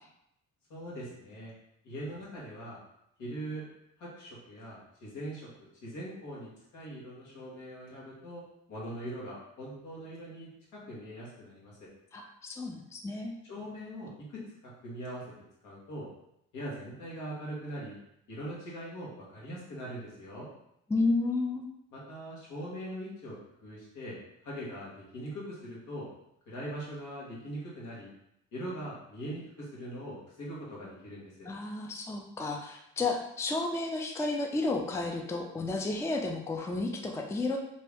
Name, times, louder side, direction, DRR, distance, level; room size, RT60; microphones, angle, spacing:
voice 1, 0.7-1.5 1.8-2.8 3.2-3.7 4.0-5.5 5.8-8.4 8.7-11.9 13.5-15.2 15.6-16.1 16.5-18.0 18.3-20.5 21.9-24.2 24.4-26.1 26.5-28.1 28.5-31.5, right 1 dB, 80° left, -5 dB, 1.3 m, -41 dB
voice 2, 12.1-13.3 20.9-21.7 31.5-37.6, left 3 dB, 10° left, 2 dB, 0.3 m, -32 dB
2.7 x 2.6 x 3.4 m, 0.80 s
cardioid pair, 90°, 30 cm